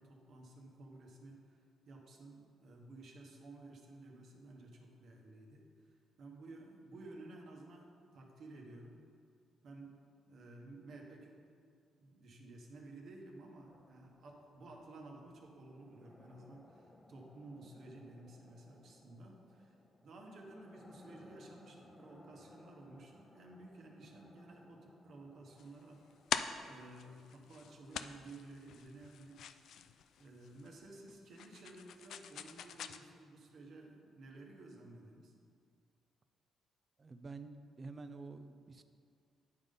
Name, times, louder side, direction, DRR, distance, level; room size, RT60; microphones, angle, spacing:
voice 1, 0.0-9.0 9.6-9.9 10.3-11.3 12.0-26.2 26.6-29.4 30.2-35.3, right 2 dB, 65° right, 0 dB, 1.2 m, -54 dB
sound 1, 13.6-27.5, left 1 dB, 15° left, 0.6 m, -62 dB
sound 2, 25.6-33.0, left 8 dB, 70° left, 0.3 m, -44 dB
voice 2, 37.0-38.8, right 3 dB, 35° right, 10 dB, 0.4 m, -49 dB
9.6 x 3.8 x 5.3 m, 2.2 s
cardioid pair, 90°, 0 cm